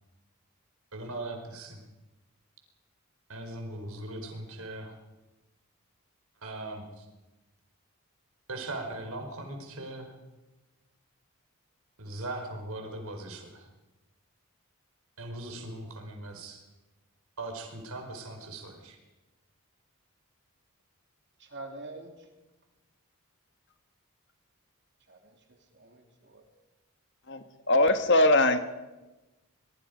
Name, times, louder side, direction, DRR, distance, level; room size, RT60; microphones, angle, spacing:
voice 1, 0.9-1.8 3.3-4.9 6.4-7.0 8.5-10.1 12.0-13.6 15.2-16.6 17.4-19.0, right 2 dB, 80° right, 4 dB, 4.6 m, -39 dB
voice 2, 21.4-22.3 25.1-26.4, right 2 dB, 50° right, 3 dB, 3.4 m, -46 dB
voice 3, 27.3-28.6, left 2 dB, 55° left, 8 dB, 1.7 m, -22 dB
24.5 x 22.0 x 5.3 m, 1.1 s
head